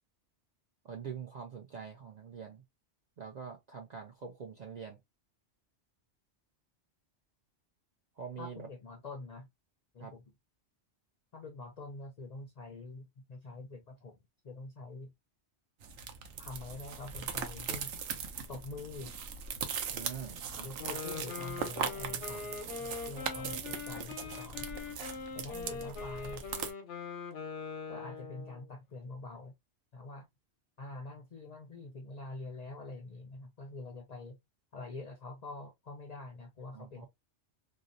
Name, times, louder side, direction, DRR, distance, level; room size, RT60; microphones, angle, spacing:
voice 1, 0.8-2.6 3.2-5.0 8.2-8.7 10.0-10.1 19.9-20.4 36.7-37.1, right 6 dB, 60° right, 0.4 m, -44 dB
voice 2, 8.4-9.5 9.9-10.2 11.3-14.2 14.4-15.1 16.4-17.9 18.5-19.1 20.5-24.7 25.3-26.5 27.9-29.5 29.9-30.3 30.8-34.4 34.7-37.1, left 2 dB, 55° left, 0.4 m, -45 dB
sound 1, 15.8-26.7, right 6 dB, 90° right, 0.9 m, -40 dB
Wind instrument woodwind instrument, 20.8-28.7, left 5 dB, 90° left, 1.0 m, -42 dB
2.7 x 2.0 x 2.4 m
omnidirectional pair, 1.2 m